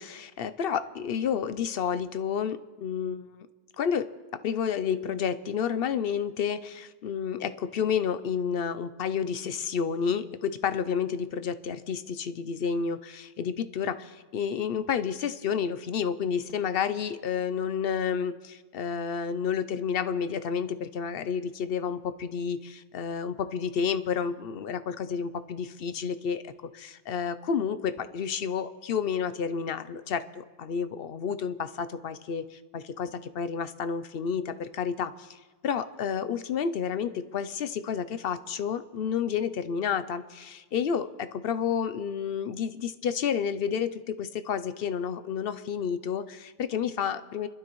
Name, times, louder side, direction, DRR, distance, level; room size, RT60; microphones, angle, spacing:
voice 1, 0.0-3.5 3.8-4.1 4.4-47.5, left 7 dB, 60° left, 12 dB, 0.8 m, -30 dB
29.0 x 12.0 x 3.1 m, 1.3 s
omnidirectional pair, 1.2 m